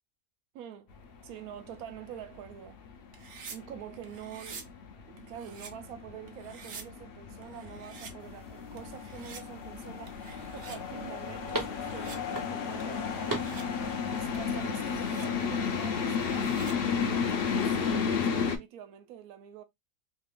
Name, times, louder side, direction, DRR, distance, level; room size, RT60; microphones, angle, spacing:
voice 1, 0.5-0.9 1.2-2.8 3.5-4.7 5.1-10.2 10.5-13.5 14.1-16.5 17.1-19.6, right 10 dB, 80° right, 1.1 m, -46 dB
sound 1, 0.9-18.6, left 6 dB, 55° left, 0.7 m, -33 dB
sound 2, 3.1-3.6 4.0-4.6 5.2-5.7 6.3-6.8 7.4-8.1 8.8-9.4 10.1-10.8 11.5-12.2 12.8-13.6 14.3-15.3 15.9-16.7 17.3-18.0, right 6 dB, 60° right, 0.9 m, -48 dB
sound 3, 8.2-15.9, right 2 dB, 20° right, 0.6 m, -43 dB
3.1 x 2.5 x 3.5 m
omnidirectional pair, 1.5 m